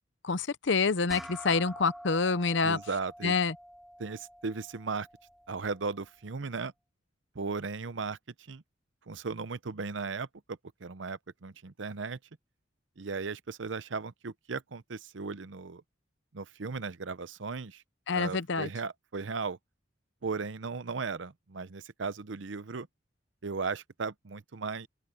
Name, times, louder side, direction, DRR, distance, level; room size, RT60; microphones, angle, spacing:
voice 1, 0.2-2.8 3.2-3.5 18.1-18.7, left 4 dB, 65° left, 0.8 m, -27 dB
sound 1, 1.1-5.9, equal, ahead, 5.8 m, -47 dB
voice 2, 2.6-3.3 4.0-5.1 5.5-6.7 7.3-8.2 8.5-8.6 9.1-12.2 13.0-15.8 16.3-17.8 18.1-19.6 20.2-22.9 23.4-24.9, right 4 dB, 70° right, 0.7 m, -36 dB
open air
head